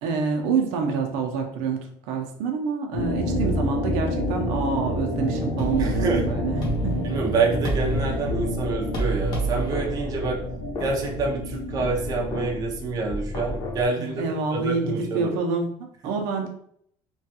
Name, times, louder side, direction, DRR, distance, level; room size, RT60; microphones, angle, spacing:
voice 1, 0.0-7.1 14.0-16.5, right 5 dB, 90° right, 2 dB, 0.6 m, -27 dB
sound 1, 2.9-14.1, left 1 dB, 75° left, 0.8 m, -29 dB
sound 2, 5.6-13.9, right 1 dB, 40° left, 0.8 m, -31 dB
voice 2, 5.8-6.3 7.0-10.4 10.8-14.2 14.5-15.3, right 4 dB, 35° right, 0 dB, 0.6 m, -27 dB
3.0 x 2.3 x 2.8 m, 0.66 s
cardioid pair, 165°, 11 cm